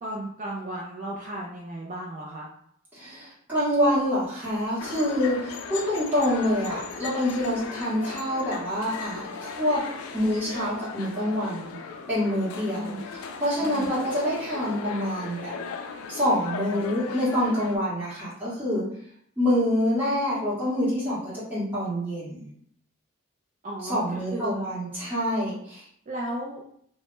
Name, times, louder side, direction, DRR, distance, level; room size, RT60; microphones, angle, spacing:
voice 1, 0.0-2.5 12.7-13.0 13.6-13.9 23.6-24.0 24.3-24.7 26.1-26.6, right 1 dB, 35° right, -3 dB, 0.3 m, -34 dB
voice 2, 2.9-9.8 10.1-11.7 12.1-15.5 16.1-18.8 19.4-22.5 23.8-25.8, equal, 10° right, -11 dB, 0.8 m, -26 dB
sound 1, 4.8-17.8, left 5 dB, 85° left, 0.3 m, -38 dB
2.1 x 2.0 x 3.0 m, 0.66 s
head